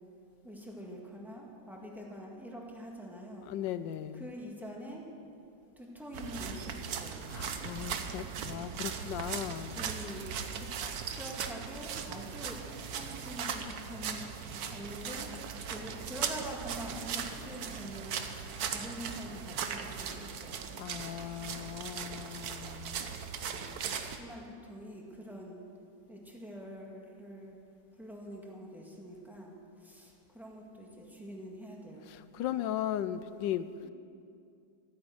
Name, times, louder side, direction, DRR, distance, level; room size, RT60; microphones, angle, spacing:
voice 1, 0.4-3.5 4.1-5.1 5.8-7.3 9.3-9.4 9.7-10.3 10.6-10.7 11.2-15.3 15.7-18.2 18.7-20.6 23.4-25.6 26.1-27.6 28.0-32.1 33.8-33.9, equal, ahead, -2 dB, 1.8 m, -45 dB
voice 2, 3.4-4.3 7.3-9.8 20.8-23.1 32.1-33.7, left 11 dB, 80° left, 13 dB, 1.3 m, -37 dB
sound 1, 6.1-24.2, right 7 dB, 60° right, 1.2 m, -39 dB
14.0 x 9.4 x 7.8 m, 2.5 s
omnidirectional pair, 2.0 m